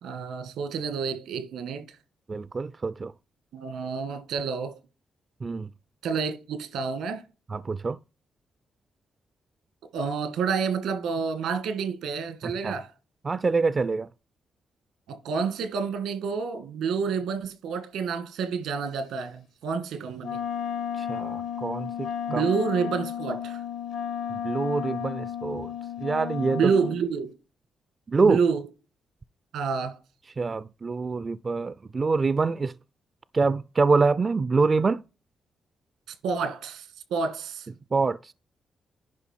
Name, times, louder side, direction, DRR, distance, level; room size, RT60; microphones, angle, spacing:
voice 1, 0.0-1.9 3.5-4.8 6.0-7.2 9.9-12.9 15.1-20.4 22.3-23.6 26.5-27.3 28.2-28.6 29.5-30.0 36.2-37.7, right 5 dB, 85° right, 1.8 m, -29 dB
voice 2, 2.3-3.1 5.4-5.7 7.5-8.0 12.4-12.7 13.2-14.1 21.0-22.4 24.3-25.7 26.0-26.7 28.1-28.4 30.4-32.7 33.3-35.0 37.9-38.3, right 4 dB, 40° right, 0.4 m, -25 dB
Wind instrument woodwind instrument, 20.2-27.0, left 9 dB, 80° left, 1.7 m, -33 dB
10.5 x 5.2 x 4.4 m
supercardioid pair, 60°, 0 cm